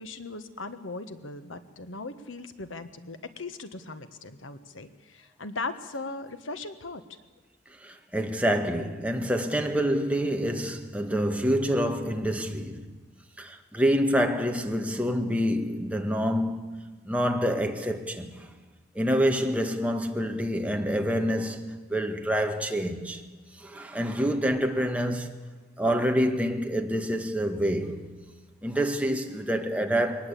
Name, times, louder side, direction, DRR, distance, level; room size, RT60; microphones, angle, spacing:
voice 1, 0.0-7.0, left 3 dB, 90° left, 1.5 m, -38 dB
voice 2, 7.8-12.9 13.4-18.5 18.9-23.2 23.6-25.4 25.8-28.1 28.6-30.3, equal, 5° right, 1.7 m, -27 dB
22.0 x 19.5 x 8.6 m
head